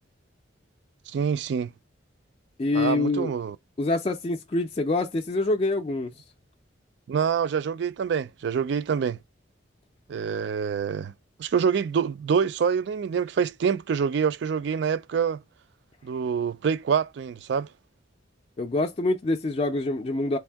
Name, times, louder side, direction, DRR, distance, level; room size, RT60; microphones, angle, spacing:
voice 1, 1.1-1.7 2.7-3.6 7.1-9.2 10.1-11.1 11.4-15.4 16.0-17.7, right 6 dB, 60° right, 0.3 m, -26 dB
voice 2, 2.6-3.3 3.8-6.1 18.6-20.4, left 2 dB, 30° left, 0.4 m, -25 dB
3.5 x 2.6 x 3.4 m
head